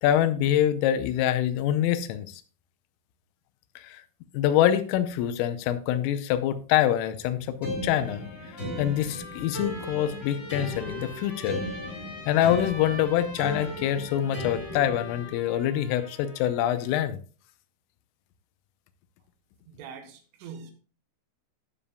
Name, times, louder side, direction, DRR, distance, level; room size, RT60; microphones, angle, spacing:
voice 1, 0.0-2.4 3.8-4.0 4.3-11.6 12.3-17.2, left 11 dB, 90° left, 3.4 m, -25 dB
sound 1, 7.6-15.3, left 1 dB, 15° left, 3.5 m, -36 dB
Trumpet, 7.9-17.1, left 1 dB, 35° left, 3.2 m, -45 dB
voice 2, 19.7-20.7, right 6 dB, 80° right, 3.8 m, -43 dB
15.0 x 7.0 x 2.3 m
omnidirectional pair, 5.7 m